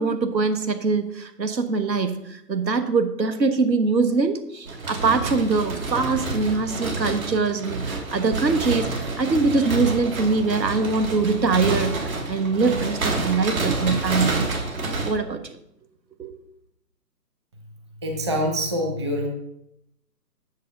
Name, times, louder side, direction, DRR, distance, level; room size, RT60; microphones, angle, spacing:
voice 1, 0.0-8.9 9.2-14.4 15.0-15.6 16.2-16.3, right 4 dB, 85° right, 9 dB, 1.4 m, -23 dB
sound 1, 4.7-15.1, right 3 dB, 55° right, 2.8 m, -28 dB
voice 2, 18.0-19.3, equal, 15° right, 1 dB, 0.8 m, -25 dB
9.8 x 6.7 x 5.3 m, 0.80 s
figure-of-eight pair, 155°, 50 cm